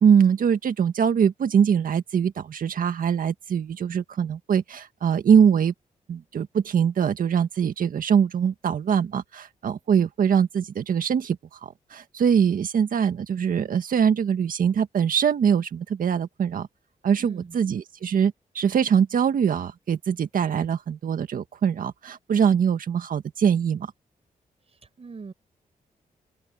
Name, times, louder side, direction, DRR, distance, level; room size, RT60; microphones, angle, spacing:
voice 1, 0.0-5.7 6.1-16.7 17.0-23.9, right 7 dB, 70° right, 1.8 m, -23 dB
voice 2, 17.2-17.6 25.0-25.3, right 4 dB, 45° right, 6.4 m, -41 dB
wide cardioid pair, 110°, 15 cm